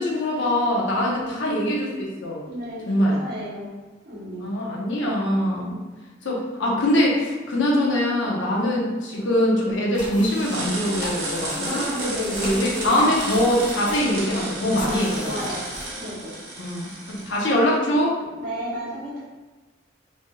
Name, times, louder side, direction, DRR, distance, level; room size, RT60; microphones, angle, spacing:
voice 1, 0.0-2.4 2.9-3.2 4.4-5.8 6.2-11.8 12.4-15.5 16.6-18.1, left 1 dB, 75° left, -3 dB, 0.7 m, -23 dB
voice 2, 1.0-1.3 2.4-3.7 4.0-4.5 5.7-5.8 11.6-13.0 14.8-15.0 15.2-15.7 16.0-16.3 18.4-19.2, equal, 60° right, -7 dB, 1.1 m, -32 dB
sound 1, 9.9-15.8, left 1 dB, 40° left, 1.1 m, -38 dB
sound 2, 10.3-17.5, right 2 dB, 80° right, 1.1 m, -33 dB
Guitar, 10.9-16.0, left 1 dB, 5° right, 0.5 m, -39 dB
3.2 x 2.9 x 2.2 m, 1.3 s
head